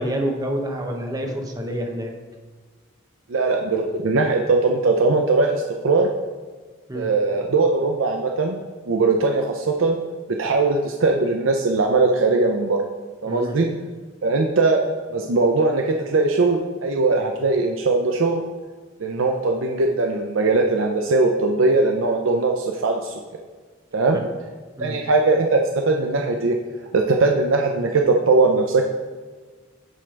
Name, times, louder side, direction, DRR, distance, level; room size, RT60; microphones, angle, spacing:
voice 1, 0.0-2.1 6.9-7.1 13.3-13.5 24.1-24.2 24.8-24.9, equal, 20° right, 2 dB, 0.9 m, -27 dB
voice 2, 3.3-6.1 6.9-8.6 8.9-10.0 10.4-12.8 13.2-13.7 14.2-14.8 15.1-18.4 19.0-23.1 23.9-24.2 24.8-26.6 26.9-28.8, right 3 dB, 85° right, 2 dB, 0.6 m, -20 dB
9.0 x 3.3 x 5.2 m, 1.4 s
head